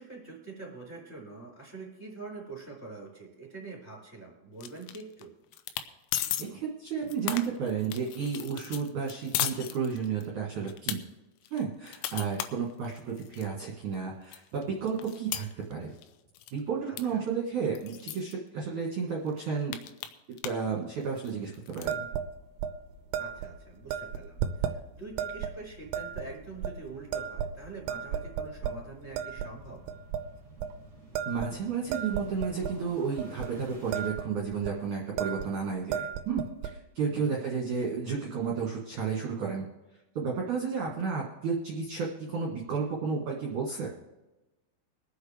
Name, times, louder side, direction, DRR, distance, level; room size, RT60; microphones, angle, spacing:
voice 1, 0.0-5.3 16.9-17.2 23.2-29.8 37.1-37.4, right 3 dB, 15° left, -1 dB, 3.0 m, -45 dB
sound 1, 4.6-5.2 5.5-5.9 6.1-6.5 6.9-10.3 10.7-11.0 11.5-13.5 13.9-14.0 14.3-16.1 16.4-16.6 17.0-17.1 17.3-17.4 17.8-18.3 18.9-19.0 19.3-20.7 21.0-21.9, left 12 dB, 85° left, 3.4 m, -36 dB
voice 2, 6.4-11.0 11.5-15.4 15.7-15.9 16.5-19.8 20.4-22.0 31.3-39.6 40.2-43.9, right 5 dB, 60° right, -3 dB, 2.2 m, -32 dB
sound 2, 21.9-22.3 22.6-22.7 23.1-23.5 23.9-24.8 25.2-25.5 25.9-26.3 26.6-26.7 27.1-27.6 27.9-28.8 29.2-29.5 29.9-30.2 30.6-30.8 31.1-32.8 33.2-33.5 33.7-34.3 34.5-34.7 35.2-35.5 35.8-36.7, right 9 dB, 85° right, 2.6 m, -33 dB
sound 3, 22.0-34.1, equal, 10° right, 2.5 m, -53 dB
23.5 x 8.0 x 3.4 m, 1.1 s
omnidirectional pair, 5.9 m